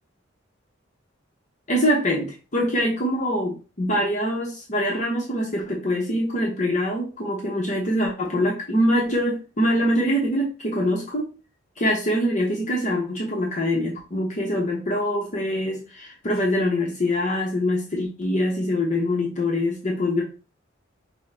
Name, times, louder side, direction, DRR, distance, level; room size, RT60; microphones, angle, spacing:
voice 1, 1.7-11.3 11.8-20.2, equal, 35° left, -1 dB, 0.8 m, -24 dB
6.1 x 2.1 x 3.3 m, 0.33 s
head